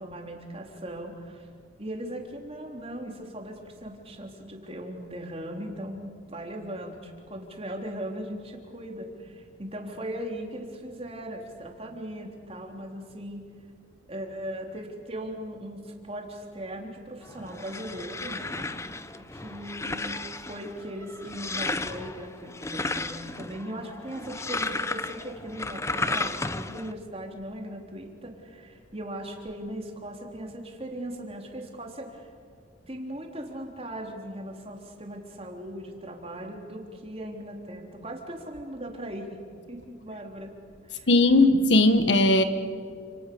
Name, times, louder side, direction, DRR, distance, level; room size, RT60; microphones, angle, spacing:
voice 1, 0.0-1.5 1.8-13.4 14.1-18.8 19.2-32.3 32.9-39.4 39.7-40.5 40.8-41.1, right 1 dB, 30° right, 2 dB, 3.7 m, -38 dB
sound 1, 17.2-26.9, left 3 dB, 15° left, 0.8 m, -34 dB
voice 2, 41.1-42.4, left 2 dB, 65° left, 9 dB, 1.7 m, -18 dB
30.0 x 28.0 x 7.0 m, 2.2 s
head